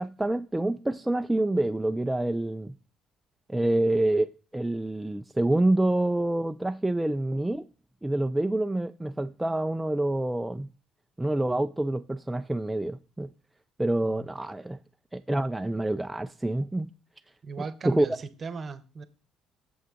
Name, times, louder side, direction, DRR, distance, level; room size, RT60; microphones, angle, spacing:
voice 1, 0.0-2.7 3.5-7.6 8.0-10.7 11.2-13.3 13.8-14.8 15.1-16.9 17.9-18.1, right 1 dB, 10° right, 0.3 m, -27 dB
voice 2, 17.4-19.0, right 5 dB, 40° right, 0.9 m, -37 dB
8.0 x 7.0 x 3.8 m
cardioid pair, 100°, 0 cm